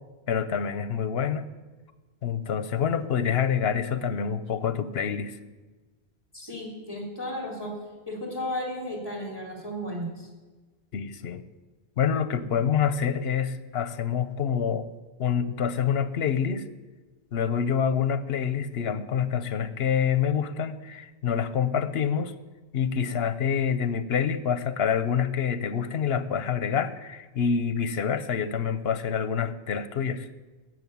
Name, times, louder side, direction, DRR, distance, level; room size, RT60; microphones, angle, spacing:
voice 1, 0.3-1.4 2.2-5.4 10.9-11.4 12.0-14.9 15.2-16.7 17.3-22.3 22.7-30.3, left 7 dB, 80° left, 13 dB, 1.0 m, -27 dB
voice 2, 6.3-7.7 8.1-10.3, equal, 25° left, 0 dB, 3.7 m, -34 dB
15.5 x 6.4 x 9.4 m, 1.3 s
omnidirectional pair, 1.0 m